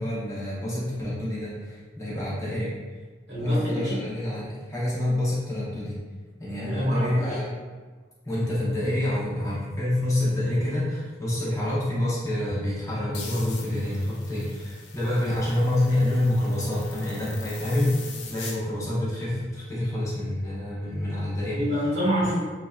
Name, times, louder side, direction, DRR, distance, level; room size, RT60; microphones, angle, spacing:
voice 1, 0.0-2.7 3.4-6.0 6.4-7.4 8.2-21.6, left 1 dB, 20° left, -8 dB, 0.8 m, -27 dB
voice 2, 3.3-4.0 6.7-7.4 17.6-17.8 21.6-22.4, equal, 80° right, -8 dB, 1.4 m, -26 dB
sound 1, 13.1-18.6, left 4 dB, 80° left, 0.5 m, -42 dB
3.1 x 2.7 x 2.3 m, 1.4 s
head